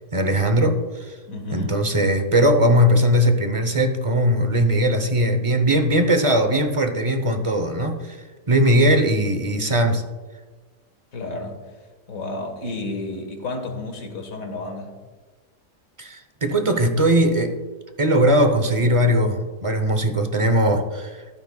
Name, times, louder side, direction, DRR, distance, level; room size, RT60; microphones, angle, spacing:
voice 1, 0.1-1.2 1.5-10.0 16.0-17.6 18.0-21.4, equal, 30° right, 6 dB, 0.6 m, -19 dB
voice 2, 1.3-1.8 11.1-11.6 12.1-15.0, left 2 dB, 55° left, 4 dB, 1.9 m, -31 dB
14.0 x 12.0 x 2.3 m, 1.4 s
omnidirectional pair, 1.8 m